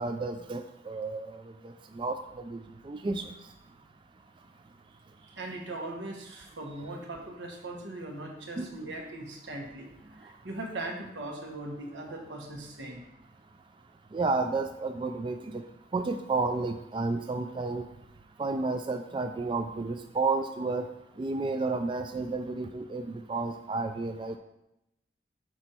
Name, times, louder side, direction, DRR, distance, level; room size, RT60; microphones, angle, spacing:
voice 1, 0.0-3.3 8.6-8.7 14.1-15.6 15.9-17.9 18.4-20.9 21.2-24.4, right 3 dB, 25° right, 6 dB, 0.3 m, -31 dB
voice 2, 5.2-9.9 10.2-13.0, right 2 dB, 90° right, 1 dB, 1.3 m, -39 dB
6.2 x 5.3 x 4.3 m, 0.85 s
head